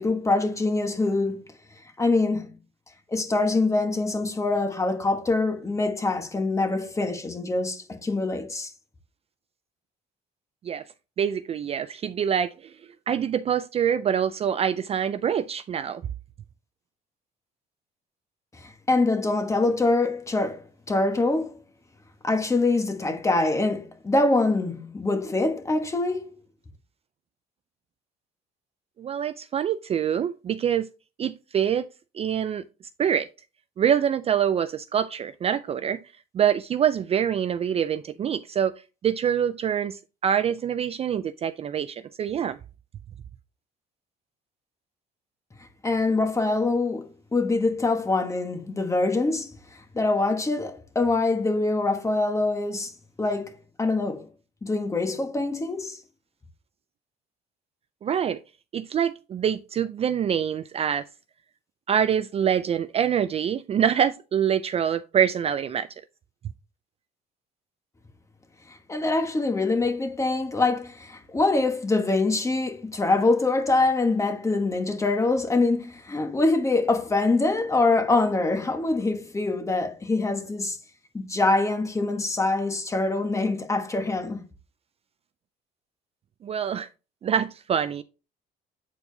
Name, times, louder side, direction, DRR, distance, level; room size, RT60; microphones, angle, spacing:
voice 1, 0.0-1.5 2.0-2.6 3.1-8.7 18.5-21.5 22.2-26.3 45.8-52.9 53.2-54.3 54.6-56.0 68.7-80.8 81.1-84.4, left 3 dB, 15° left, 1.2 m, -24 dB
voice 2, 11.2-12.7 13.1-16.0 29.0-30.9 31.2-31.9 32.1-32.6 33.0-33.3 33.8-36.0 36.3-38.7 39.0-42.6 58.0-58.4 58.7-61.0 61.9-65.9 86.4-86.9 87.2-88.0, right 8 dB, 35° right, 0.4 m, -25 dB
8.3 x 4.4 x 2.7 m
cardioid pair, 110°, 17 cm